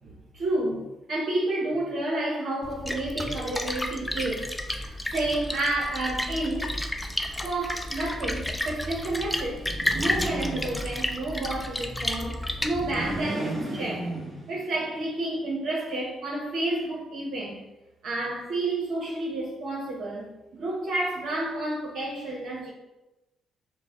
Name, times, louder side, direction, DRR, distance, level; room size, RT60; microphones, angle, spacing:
voice 1, 0.0-4.5 4.8-6.7 7.4-14.2 14.5-17.6 18.0-22.7, right 2 dB, 70° right, 0.8 m, -30 dB
Splash splatter, 2.6-13.2, left 1 dB, 10° left, 0.5 m, -32 dB
sound 1, 9.6-11.3 12.6-14.8, right 2 dB, 40° right, 1.4 m, -35 dB
5.5 x 2.1 x 3.6 m
supercardioid pair, 65°, 0 cm